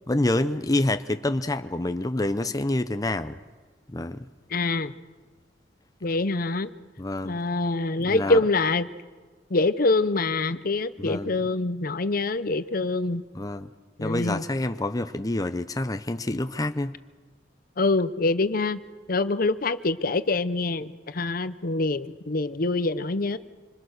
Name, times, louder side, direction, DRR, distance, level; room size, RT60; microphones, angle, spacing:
voice 1, 0.1-3.4 3.9-4.3 7.0-7.4 8.1-8.4 11.0-11.4 13.3-13.7 14.0-16.9, left 2 dB, 20° left, 9 dB, 0.7 m, -27 dB
voice 2, 4.5-4.9 6.0-6.7 7.2-8.9 9.5-13.2 14.0-14.4 17.8-18.8 19.1-23.4, left 3 dB, 50° left, 13 dB, 0.8 m, -25 dB
26.5 x 26.0 x 6.6 m, 1.4 s
head